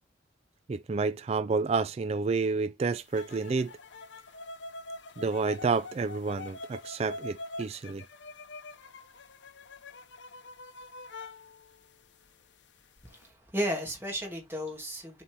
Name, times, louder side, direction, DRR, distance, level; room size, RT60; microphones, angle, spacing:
voice 1, 0.7-3.7 5.2-8.0, right 4 dB, 35° right, 0.3 m, -29 dB
sound 1, 3.1-12.5 12.8-13.3, left 2 dB, 70° left, 0.8 m, -45 dB
voice 2, 13.0-15.2, equal, 10° right, 2.4 m, -34 dB
7.2 x 4.2 x 3.3 m
head